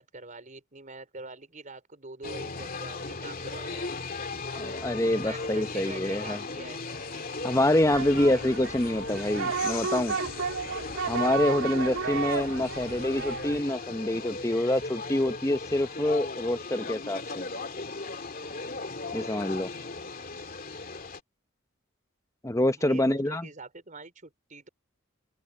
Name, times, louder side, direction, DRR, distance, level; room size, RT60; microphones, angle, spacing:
voice 1, 0.0-3.9 5.2-6.8 7.7-8.4 22.8-24.7, right 2 dB, 40° right, 4.9 m, -44 dB
sound 1, 2.2-21.2, left 3 dB, 45° left, 2.6 m, -37 dB
voice 2, 4.5-6.4 7.4-10.2 11.1-17.5 19.1-19.7 22.4-23.5, left 1 dB, 15° left, 0.9 m, -26 dB
sound 2, 7.9-13.6, right 5 dB, 90° right, 2.9 m, -33 dB
open air
head